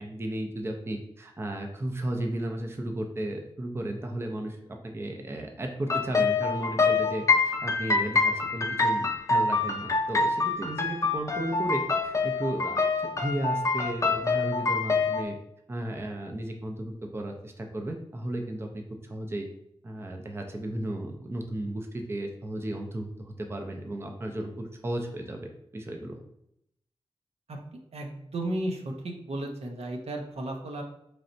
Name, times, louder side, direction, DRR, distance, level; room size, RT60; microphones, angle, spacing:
voice 1, 0.0-4.6 4.8-15.4 15.7-19.5 19.8-26.2, right 1 dB, 25° right, 2 dB, 0.5 m, -34 dB
sound 1, 5.9-15.2, left 4 dB, 30° left, 0.5 m, -26 dB
voice 2, 27.9-30.8, right 1 dB, 75° right, 2 dB, 0.7 m, -34 dB
3.9 x 3.2 x 2.6 m, 0.78 s
wide cardioid pair, 95°, 11 cm